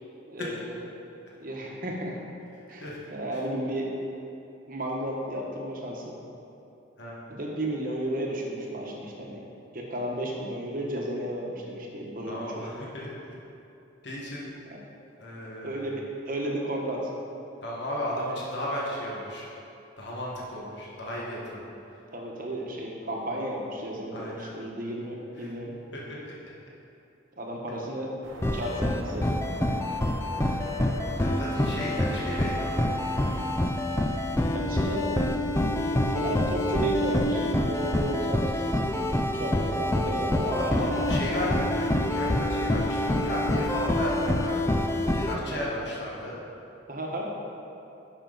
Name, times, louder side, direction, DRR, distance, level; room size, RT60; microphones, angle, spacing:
voice 1, 0.3-0.8 1.4-2.2 2.7-3.9 4.7-6.2 7.3-9.4 9.7-12.8 14.6-14.8 15.6-17.1 22.1-25.7 27.4-28.1 28.5-29.4 34.5-38.7 39.3-40.6 46.9-47.3, right 1 dB, 45° right, -1 dB, 1.1 m, -33 dB
voice 2, 12.3-13.4 14.0-14.5 15.2-15.9 17.6-19.5 20.0-21.6 24.1-24.5 25.4-25.5 25.9-26.3 29.8-30.0 30.3-30.6 31.2-32.9 39.7-39.8 40.4-46.4, left 1 dB, 60° left, -5 dB, 1.5 m, -34 dB
sound 1, 28.2-33.5, right 1 dB, 85° right, 1.1 m, -42 dB
sound 2, 28.4-45.4, left 1 dB, 15° left, 0.3 m, -27 dB
10.5 x 5.6 x 3.9 m, 2.8 s
head